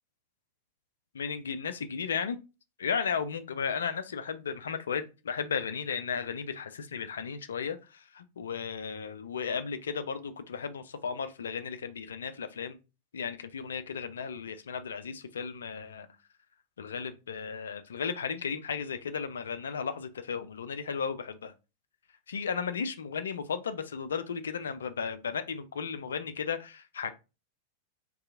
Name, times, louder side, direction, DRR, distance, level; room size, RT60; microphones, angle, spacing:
voice 1, 1.1-2.4 2.8-12.8 13.1-16.1 16.8-21.5 22.3-27.1, left 6 dB, 65° left, 0.3 m, -35 dB
2.7 x 2.3 x 3.6 m
figure-of-eight pair, 90°, 0 cm